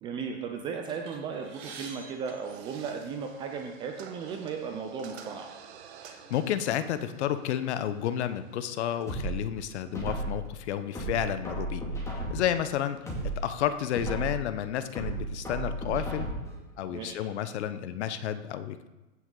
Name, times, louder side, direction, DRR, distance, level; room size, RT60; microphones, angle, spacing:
voice 1, 0.0-5.5 16.9-17.2, right 6 dB, 15° right, 3 dB, 0.4 m, -36 dB
sound 1, 1.1-3.4 4.2-4.4 4.7-4.9 5.7-5.9 6.4-7.5, right 4 dB, 35° right, 3.3 m, -49 dB
sound 2, 2.2-9.3, right 8 dB, 50° right, 1.4 m, -52 dB
voice 2, 6.1-11.8 12.1-13.1 13.4-16.3 16.8-18.9, left 10 dB, 55° left, 11 dB, 0.9 m, -31 dB
sound 3, 9.1-10.5 11.0-12.6 13.0-14.5 15.0-16.6 17.0-17.1, right 2 dB, 5° left, 2.2 m, -34 dB
15.5 x 6.2 x 3.9 m, 1.1 s
hypercardioid pair, 135°, 40 cm